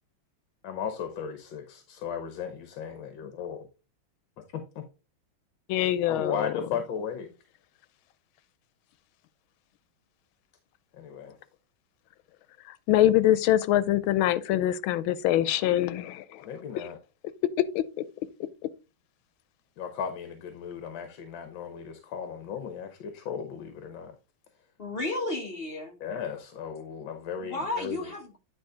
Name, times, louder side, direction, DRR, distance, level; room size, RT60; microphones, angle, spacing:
voice 1, 0.6-3.7 4.5-4.9 5.8-7.3 10.9-11.4 16.4-17.0 19.8-24.2 26.0-28.1, left 7 dB, 70° left, 1.6 m, -36 dB
voice 2, 5.7-6.5 12.6-16.5 16.8-16.9 17.6-18.0, left 13 dB, 90° left, 1.5 m, -24 dB
voice 3, 24.8-26.0 27.4-28.4, left 2 dB, 30° left, 1.5 m, -33 dB
9.6 x 4.2 x 3.8 m
omnidirectional pair, 2.2 m